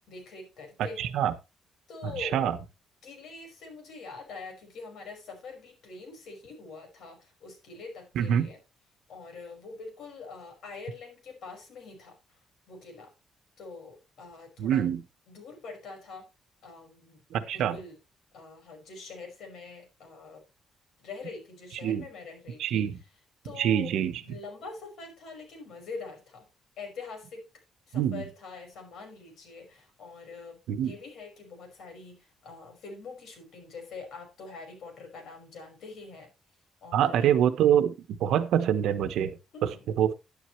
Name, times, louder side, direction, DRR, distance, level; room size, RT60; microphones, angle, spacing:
voice 1, 0.1-1.1 1.9-2.4 3.0-8.6 9.1-12.2 12.7-13.1 13.6-14.9 15.3-16.3 16.6-17.2 17.5-18.0 18.3-20.4 21.0-22.9 23.4-23.9 24.2-26.5 26.8-27.4 27.9-36.3 36.8-37.3 39.5-39.9, left 4 dB, 60° left, 5.5 m, -44 dB
voice 2, 1.0-1.3 2.0-2.6 8.2-8.5 14.6-15.0 17.3-17.8 21.8-22.0 22.6-23.0 23.6-24.2 27.9-28.2 30.7-31.0 36.9-40.1, right 9 dB, 75° right, 1.2 m, -25 dB
11.0 x 11.0 x 3.2 m
cardioid pair, 150°, 0 cm